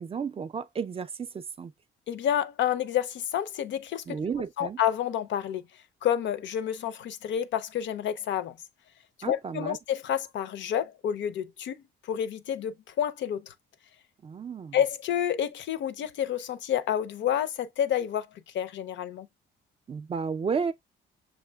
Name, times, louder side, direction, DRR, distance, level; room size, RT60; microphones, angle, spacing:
voice 1, 0.0-1.7 4.1-4.8 9.2-9.8 14.2-14.8 19.9-20.7, right 6 dB, 30° right, 0.4 m, -32 dB
voice 2, 2.1-4.2 4.6-5.6 6.0-8.6 9.2-13.5 14.7-18.3 18.5-19.3, left 10 dB, 65° left, 0.5 m, -29 dB
6.2 x 2.9 x 2.2 m
cardioid pair, 90°, 20 cm